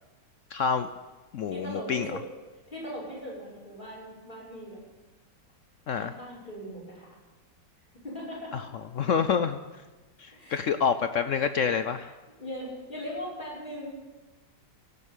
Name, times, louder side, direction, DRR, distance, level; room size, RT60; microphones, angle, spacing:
voice 1, 0.5-0.9 1.3-2.1 5.9-6.1 8.5-8.6 8.9-9.6 10.2-12.1, left 6 dB, 65° left, 10 dB, 0.7 m, -27 dB
voice 2, 1.5-2.2 2.7-4.8 6.0-7.1 8.0-8.6 10.3-10.7 12.4-13.9, equal, 25° left, -6 dB, 6.4 m, -39 dB
17.5 x 8.2 x 8.3 m, 1.2 s
omnidirectional pair, 1.9 m